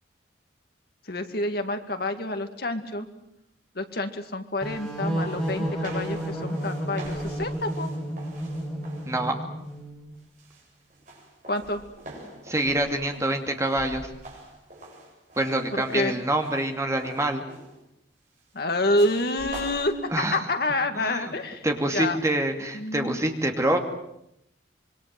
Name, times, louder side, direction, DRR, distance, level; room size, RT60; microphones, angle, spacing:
voice 1, 1.1-3.1 3.7-7.9 11.5-11.8 15.7-16.1 18.5-21.7 21.9-22.2 22.7-23.2, left 2 dB, 55° left, 7 dB, 2.2 m, -28 dB
sound 1, 4.6-10.1, right 1 dB, ahead, 7.1 m, -31 dB
sound 2, 4.9-5.0 5.2-9.2 9.7-10.0 10.4-17.8 19.0-19.9, right 2 dB, 45° right, 7.9 m, -45 dB
voice 2, 12.5-14.1 15.4-17.4 20.1-20.4 21.0-21.3 21.6-23.8, right 1 dB, 15° right, 4 dB, 2.6 m, -26 dB
26.5 x 23.0 x 7.8 m, 0.80 s
head